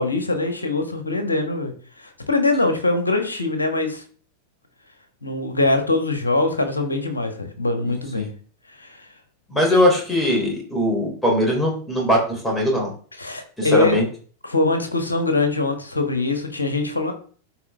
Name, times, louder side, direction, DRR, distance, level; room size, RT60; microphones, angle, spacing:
voice 1, 0.0-1.7 2.0-4.0 5.2-8.3 8.8-9.1 13.2-14.0 14.4-17.1, left 2 dB, 80° left, 7 dB, 1.5 m, -22 dB
voice 2, 9.5-12.9 13.6-14.0, left 1 dB, 5° left, -1 dB, 3.4 m, -20 dB
12.5 x 4.6 x 3.5 m, 0.43 s
figure-of-eight pair, 90°, 0 cm